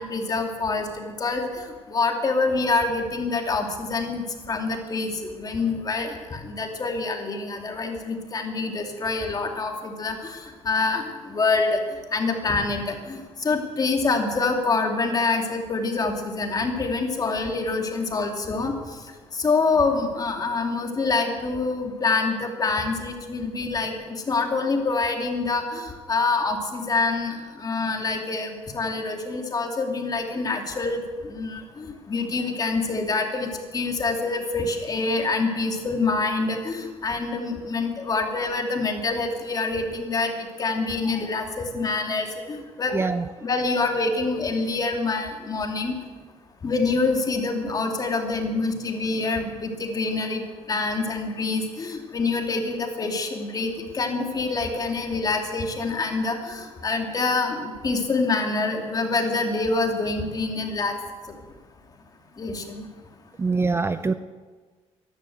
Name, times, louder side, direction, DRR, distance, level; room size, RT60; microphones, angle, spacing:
voice 1, 0.0-1.5 1.9-5.1 5.4-10.1 10.7-11.1 11.3-11.8 12.1-13.2 13.4-18.7 19.4-23.9 24.3-27.3 27.6-31.0 31.3-40.3 40.6-43.0 43.4-45.9 46.6-50.4 50.7-60.9 62.4-62.8, left 3 dB, 35° left, 3 dB, 2.7 m, -26 dB
voice 2, 42.9-43.3 63.4-64.1, right 4 dB, 20° right, 11 dB, 0.5 m, -24 dB
14.5 x 11.5 x 7.9 m, 1.4 s
cardioid pair, 105°, 12 cm